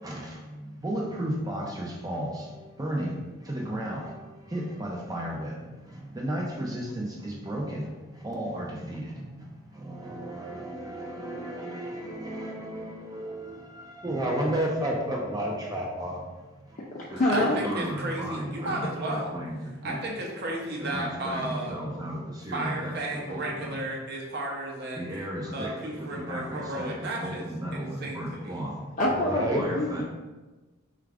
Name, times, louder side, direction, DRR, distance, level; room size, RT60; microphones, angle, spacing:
voice 1, 0.8-2.3 2.8-3.1 3.5-4.0 4.5-5.5 6.2-7.1 7.5-7.8 8.2-9.0 10.2-13.4 14.0-16.2 17.4-18.8 19.1-19.6 19.9-20.0 20.9-22.1 22.5-22.9 23.6-23.8 25.0-25.7 26.3-26.9 27.2-27.9 28.2-28.7 29.0-30.0, right 1 dB, 20° right, -2 dB, 0.5 m, -32 dB
voice 2, 16.8-17.6 29.0-30.0, left 1 dB, 35° left, -4 dB, 0.4 m, -26 dB
voice 3, 17.3-19.3 19.8-21.8 22.5-25.2 25.5-27.4 27.7-28.6, right 1 dB, 50° right, -2 dB, 0.7 m, -33 dB
4.7 x 2.4 x 3.3 m, 1.2 s
head